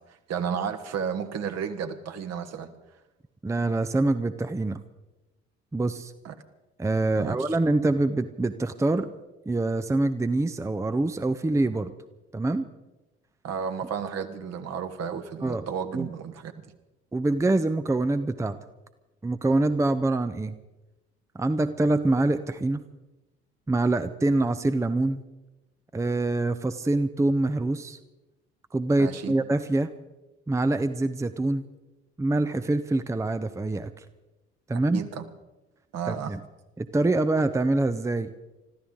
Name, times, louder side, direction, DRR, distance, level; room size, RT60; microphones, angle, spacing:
voice 1, 0.1-2.7 6.2-6.3 7.2-7.3 13.4-16.7 29.0-29.3 34.7-35.2 35.9-36.3, right 7 dB, 50° right, 7 dB, 1.5 m, -32 dB
voice 2, 3.4-4.8 5.7-6.1 6.8-9.1 9.5-11.9 12.3-12.7 15.4-15.6 15.9-16.1 17.1-18.6 19.2-20.6 21.3-22.8 23.7-25.2 25.9-28.0 28.7-29.9 30.5-31.7 32.2-34.0 34.7-35.0 36.1-36.4 36.8-38.3, right 2 dB, 10° right, 10 dB, 0.7 m, -25 dB
25.5 x 14.0 x 3.9 m, 1.0 s
figure-of-eight pair, 55°, 33 cm